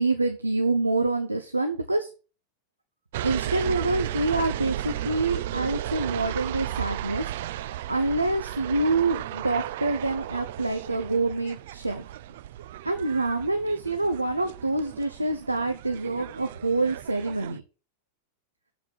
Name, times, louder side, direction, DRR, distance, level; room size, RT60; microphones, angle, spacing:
voice 1, 0.0-2.1 3.2-7.3 7.9-12.0 12.8-17.6, right 2 dB, 85° right, 7 dB, 0.9 m, -26 dB
sound 1, 3.1-17.6, right 13 dB, 55° right, 0.4 m, -34 dB
7.5 x 5.9 x 7.6 m, 0.34 s
figure-of-eight pair, 90°, 0 cm